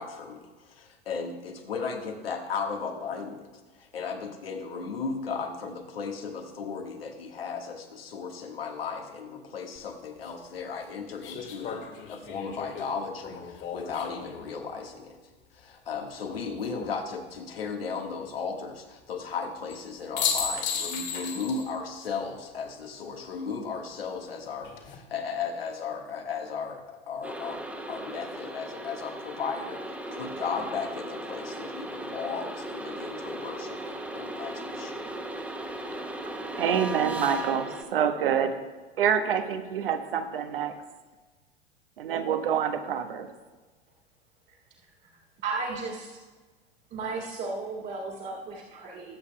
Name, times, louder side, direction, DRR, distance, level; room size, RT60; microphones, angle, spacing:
voice 1, 0.0-3.5 3.8-11.8 12.1-15.2 15.5-27.6 27.9-35.1, left 5 dB, 75° left, 3 dB, 1.5 m, -35 dB
sound 1, 9.7-9.8 11.2-14.4 16.3-16.9 19.7-19.8 20.2-21.7 22.0-22.1 24.4-24.9, left 6 dB, 35° left, 2.1 m, -34 dB
sound 2, 27.2-37.8, right 1 dB, 5° right, 1.1 m, -37 dB
voice 2, 36.6-38.6 39.0-40.7 42.0-43.3, right 8 dB, 65° right, 8 dB, 1.1 m, -27 dB
voice 3, 45.4-46.1 46.9-49.2, right 4 dB, 35° right, -3 dB, 1.9 m, -34 dB
20.0 x 8.3 x 2.2 m, 1.3 s
figure-of-eight pair, 85°, 30 cm